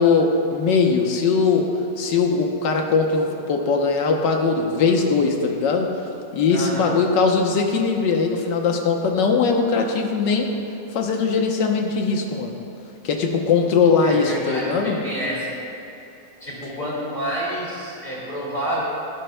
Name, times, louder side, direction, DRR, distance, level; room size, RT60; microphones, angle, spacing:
voice 1, 0.0-1.7 2.0-5.9 6.3-10.6 10.9-12.5 13.0-15.0, left 4 dB, 75° left, 2 dB, 1.6 m, -20 dB
voice 2, 6.5-6.9 14.0-15.5 16.4-18.8, equal, 25° left, -7 dB, 2.7 m, -28 dB
16.5 x 11.5 x 2.3 m, 2.9 s
omnidirectional pair, 2.0 m